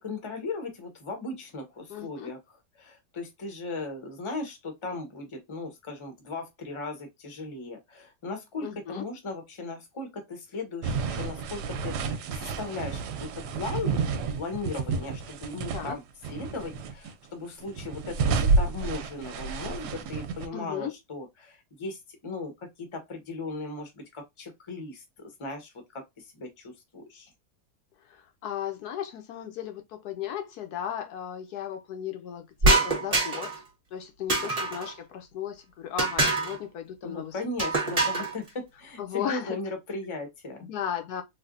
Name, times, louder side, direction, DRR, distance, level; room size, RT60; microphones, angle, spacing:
voice 1, 0.0-14.0 14.3-16.0 16.3-27.3 37.0-40.7, left 3 dB, 25° left, 0.7 m, -37 dB
voice 2, 1.9-2.3 8.6-9.1 15.7-16.0 20.5-20.9 28.0-33.6 33.9-37.4 37.9-38.3 39.0-39.6 40.6-41.2, left 10 dB, 75° left, 1.1 m, -36 dB
sound 1, 10.8-15.9 16.2-17.1 17.6-20.5, right 4 dB, 90° right, 1.2 m, -30 dB
sound 2, 32.6-33.6 34.3-34.9 36.0-36.6 37.6-38.3, right 2 dB, 30° right, 0.8 m, -24 dB
3.4 x 2.6 x 2.5 m
omnidirectional pair, 1.7 m